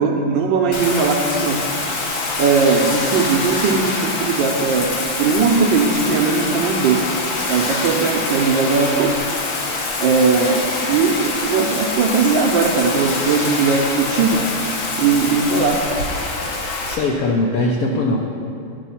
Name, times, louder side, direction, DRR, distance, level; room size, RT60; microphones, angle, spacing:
voice 1, 0.0-1.6 2.4-4.9 5.2-7.1 7.5-9.2 10.0-14.5 15.0-15.8, right 5 dB, 70° right, 2 dB, 1.2 m, -18 dB
Bathtub (filling or washing), 0.7-17.0, left 3 dB, 55° left, 1.2 m, -25 dB
voice 2, 16.9-18.2, left 2 dB, 85° left, 0 dB, 0.7 m, -20 dB
9.9 x 5.4 x 5.7 m, 2.5 s
omnidirectional pair, 2.4 m